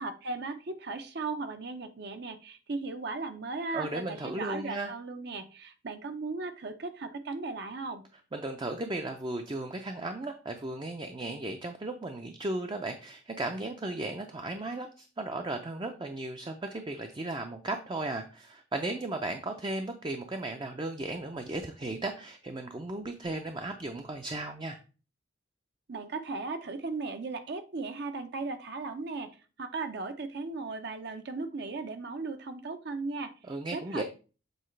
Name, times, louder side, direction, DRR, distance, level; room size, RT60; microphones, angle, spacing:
voice 1, 0.0-8.0 25.9-29.3 29.6-33.3 33.7-34.0, right 3 dB, 60° right, 8 dB, 0.7 m, -37 dB
voice 2, 3.7-4.9 8.3-24.8 33.5-34.0, right 2 dB, 25° right, 5 dB, 0.5 m, -35 dB
7.8 x 4.2 x 3.2 m, 0.35 s
head